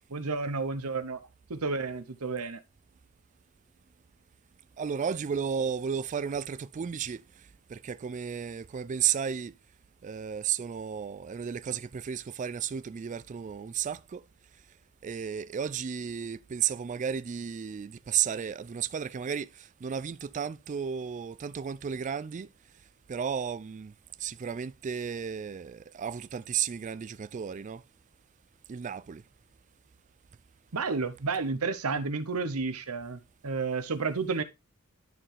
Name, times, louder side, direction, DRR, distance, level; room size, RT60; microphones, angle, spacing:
voice 1, 0.1-2.6 30.7-34.4, right 4 dB, 75° right, 0.9 m, -31 dB
voice 2, 4.8-7.2 7.7-9.5 10.0-14.2 15.0-22.5 23.1-23.9 24.2-27.8 28.7-29.2, right 7 dB, 35° right, 0.3 m, -33 dB
12.0 x 4.7 x 3.4 m
head